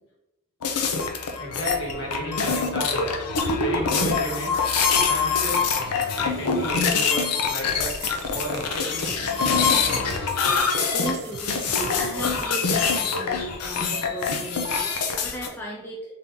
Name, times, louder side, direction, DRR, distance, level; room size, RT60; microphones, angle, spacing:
sound 1, 0.6-15.5, left 5 dB, 85° left, 0.6 m, -24 dB
voice 1, 0.8-3.2 3.6-4.6 4.9-5.7 6.2-7.9 8.3-9.6, right 1 dB, 55° left, -3 dB, 1.4 m, -33 dB
sound 2, 7.7-13.2, right 4 dB, 45° right, 0.4 m, -41 dB
voice 2, 10.9-16.1, equal, 10° left, -4 dB, 0.5 m, -36 dB
3.8 x 3.4 x 2.8 m, 0.93 s
head